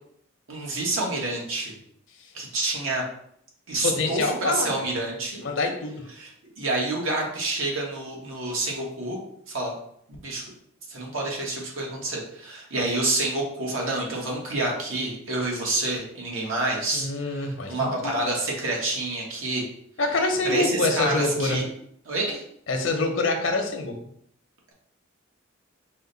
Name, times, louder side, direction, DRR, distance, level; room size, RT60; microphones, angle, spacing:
voice 1, 0.5-1.8 2.3-3.0 3.7-5.4 6.2-6.3 6.6-9.2 9.5-9.7 10.2-10.4 10.9-19.7 20.4-21.7 22.0-22.4, right 2 dB, 85° right, -2 dB, 1.3 m, -28 dB
voice 2, 3.8-4.7 5.4-6.0 16.9-18.2 20.0-21.6 22.7-24.0, left 3 dB, 70° left, 4 dB, 0.7 m, -25 dB
4.9 x 2.2 x 3.9 m, 0.70 s
head